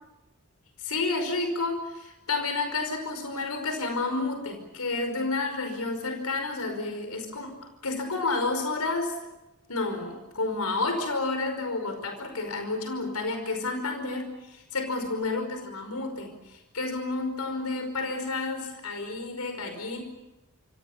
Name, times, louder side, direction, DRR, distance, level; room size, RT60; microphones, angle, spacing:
voice 1, 0.8-7.5 7.8-9.2 9.7-20.0, left 3 dB, 85° left, 6 dB, 5.2 m, -30 dB
28.0 x 26.0 x 7.2 m, 0.98 s
head